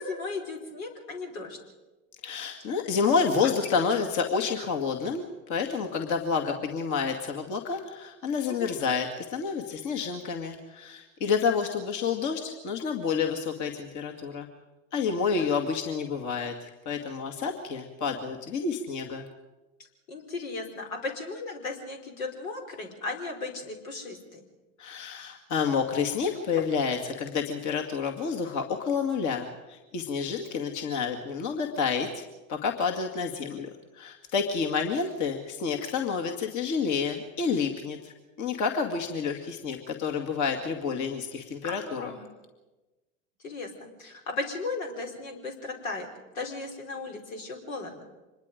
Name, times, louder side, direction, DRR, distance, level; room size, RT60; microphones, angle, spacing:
voice 1, 0.0-1.6 8.5-8.8 15.4-15.5 20.1-24.4 41.6-42.2 43.4-48.1, left 3 dB, 80° left, 3 dB, 4.2 m, -36 dB
voice 2, 2.2-14.5 14.9-19.3 24.8-33.7 33.9-38.1 38.4-42.1, left 5 dB, 45° left, 2 dB, 2.3 m, -29 dB
25.5 x 21.0 x 5.2 m, 1.1 s
hypercardioid pair, 85°, 41 cm